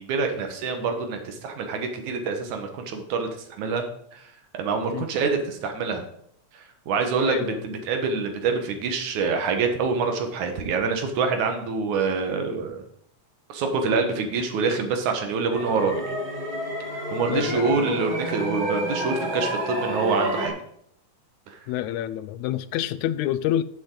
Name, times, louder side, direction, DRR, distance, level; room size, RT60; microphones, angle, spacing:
voice 1, 0.0-3.3 3.6-3.8 4.1-6.0 6.5-12.8 13.5-16.1 17.1-20.6 21.5-21.6, right 4 dB, 75° right, 5 dB, 2.8 m, -26 dB
voice 2, 7.2-7.6 17.3-18.0 21.7-23.6, left 12 dB, 80° left, 14 dB, 1.8 m, -28 dB
sound 1, 15.5-20.5, equal, 40° right, 3.3 m, -29 dB
13.5 x 7.2 x 3.9 m, 0.69 s
omnidirectional pair, 3.5 m